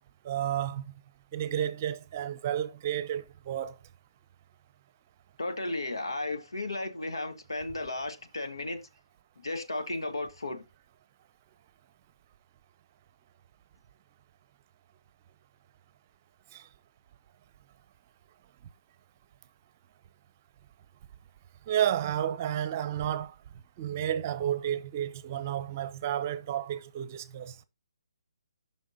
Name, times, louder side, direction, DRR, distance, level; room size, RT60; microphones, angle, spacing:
voice 1, 0.2-0.8 1.3-3.7 16.5-16.6 21.7-23.3 23.8-27.6, right 10 dB, 35° right, 0.8 m, -31 dB
voice 2, 5.4-8.8 9.4-10.6, left 2 dB, 85° left, 1.5 m, -34 dB
15.0 x 5.7 x 2.7 m
figure-of-eight pair, 145°, 2 cm